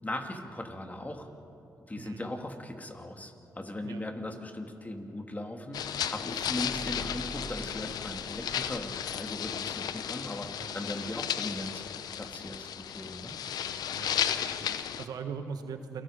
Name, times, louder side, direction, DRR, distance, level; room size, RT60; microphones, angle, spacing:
voice 1, 0.0-1.3 1.9-11.9 12.1-13.3, left 1 dB, 25° left, 4 dB, 2.7 m, -39 dB
voice 2, 2.0-2.3 3.8-4.0 10.6-10.9 14.0-16.0, right 6 dB, 80° right, 7 dB, 1.5 m, -41 dB
sound 1, 5.7-15.0, left 9 dB, 80° left, 0.7 m, -34 dB
sound 2, 6.3-9.6, right 3 dB, 55° right, 1.8 m, -47 dB
28.5 x 18.5 x 5.2 m, 2.8 s
supercardioid pair, 50°, 7 cm